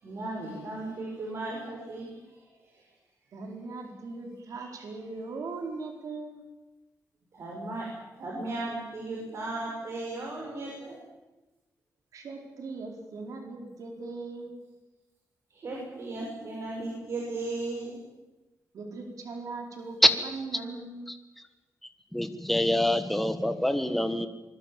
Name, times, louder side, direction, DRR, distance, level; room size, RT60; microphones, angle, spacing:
voice 1, 0.0-2.4 2.7-2.8 7.3-7.9 8.1-11.0 15.5-18.0, right 2 dB, 50° right, -2 dB, 6.5 m, -36 dB
voice 2, 3.3-6.5 12.1-14.6 18.7-20.0 20.2-21.0, right 3 dB, 70° right, 3 dB, 4.7 m, -39 dB
voice 3, 22.1-24.3, left 1 dB, 5° left, 8 dB, 1.5 m, -24 dB
25.5 x 21.5 x 7.6 m, 1.1 s
wide cardioid pair, 160°, 6 cm